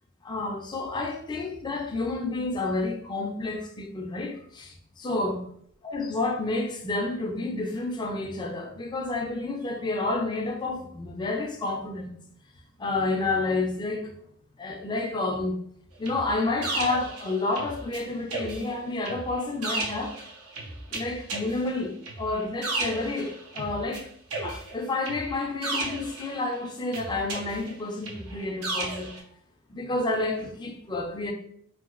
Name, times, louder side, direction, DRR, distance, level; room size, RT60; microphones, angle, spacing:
voice 1, 0.2-5.4 5.8-12.1 12.8-14.1 14.6-15.6 16.0-20.1 20.9-24.1 24.4-29.1 29.7-31.3, left 2 dB, 20° left, 0.4 m, -30 dB
sound 1, 16.1-18.0 18.3-24.0 24.3-26.6 26.9-29.2, right 2 dB, 90° right, 0.8 m, -34 dB
2.9 x 2.9 x 2.4 m
head